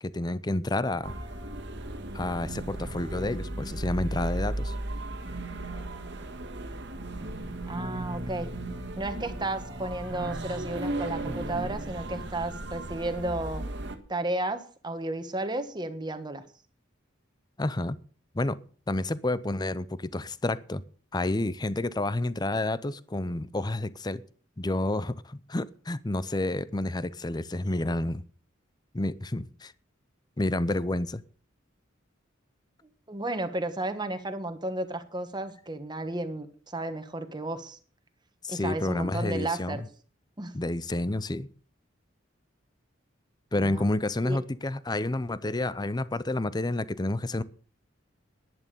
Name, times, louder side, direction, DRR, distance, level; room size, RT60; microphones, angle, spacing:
voice 1, 0.0-1.2 2.1-4.7 17.6-18.0 18.3-18.6 18.9-20.8 21.1-24.2 24.6-28.2 28.9-29.7 30.4-31.2 38.4-39.9 40.5-41.5 43.5-47.4, left 2 dB, 20° left, 17 dB, 0.6 m, -29 dB
sound 1, 1.0-14.0, right 1 dB, 65° right, 1.7 m, -35 dB
voice 2, 7.7-8.5 9.0-13.6 14.1-16.4 33.1-37.8 38.5-39.8 40.4-40.5 43.5-43.9 44.2-44.4, right 2 dB, 25° right, 9 dB, 1.5 m, -33 dB
11.0 x 11.0 x 6.9 m, 0.43 s
head